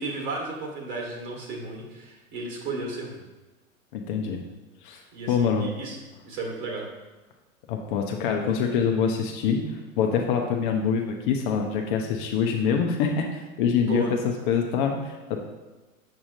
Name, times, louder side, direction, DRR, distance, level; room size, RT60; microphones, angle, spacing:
voice 1, 0.0-3.2 5.1-6.0 6.2-6.9 13.7-14.1, right 3 dB, 45° right, 0 dB, 2.0 m, -33 dB
voice 2, 3.9-4.4 4.8-5.0 5.3-5.7 7.7-9.6 10.0-15.4, left 6 dB, 35° left, 2 dB, 0.6 m, -25 dB
7.0 x 6.2 x 2.6 m, 1.2 s
figure-of-eight pair, 95°, 42 cm